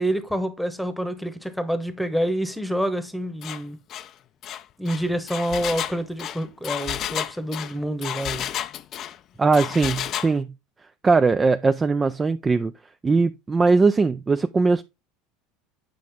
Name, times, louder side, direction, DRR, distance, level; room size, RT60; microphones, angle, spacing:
voice 1, 0.0-3.8 4.8-8.5, right 1 dB, ahead, 1.0 m, -27 dB
Engine, 3.4-3.6 3.9-4.1 4.4-9.2 9.5-10.3, left 11 dB, 45° left, 0.4 m, -31 dB
voice 2, 9.4-10.5 11.0-12.7 13.0-14.8, right 4 dB, 20° right, 0.3 m, -20 dB
7.6 x 5.0 x 3.5 m
supercardioid pair, 105°, 0 cm